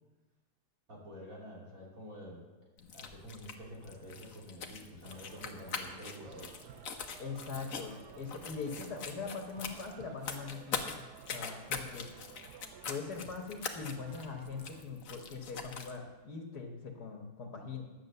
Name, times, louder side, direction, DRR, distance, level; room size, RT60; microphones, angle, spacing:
voice 1, 0.9-2.5 2.9-6.5, equal, 55° right, -3 dB, 3.3 m, -48 dB
sound 1, 2.8-16.0, left 5 dB, 55° left, 1.3 m, -43 dB
sound 2, 5.0-14.8, right 9 dB, 80° right, 1.2 m, -54 dB
voice 2, 7.2-12.1 12.9-17.8, left 5 dB, 75° left, 2 dB, 1.9 m, -42 dB
11.0 x 8.7 x 6.8 m, 1.1 s
omnidirectional pair, 1.8 m